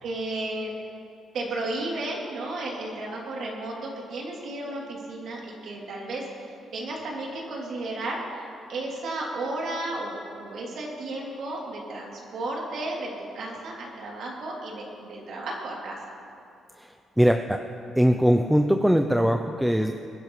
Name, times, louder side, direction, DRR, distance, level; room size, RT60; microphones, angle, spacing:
voice 1, 0.0-0.7 1.3-6.2 6.7-16.0, right 2 dB, 70° right, -3 dB, 3.0 m, -33 dB
voice 2, 16.8-17.6 18.0-19.9, equal, 5° right, 6 dB, 0.5 m, -21 dB
22.5 x 10.5 x 3.2 m, 2.7 s
cardioid pair, 90°, 0 cm